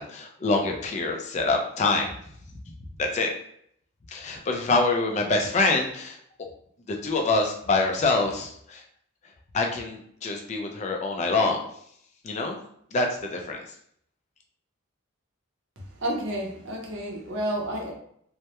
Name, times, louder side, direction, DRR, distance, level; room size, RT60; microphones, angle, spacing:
voice 1, 0.0-2.1 3.0-3.3 4.1-6.2 6.9-8.8 9.5-11.6 12.2-12.6 12.9-13.6, left 3 dB, 30° left, 2 dB, 0.3 m, -25 dB
voice 2, 15.9-17.9, right 1 dB, 60° right, -1 dB, 0.6 m, -30 dB
2.2 x 2.0 x 2.8 m, 0.67 s
head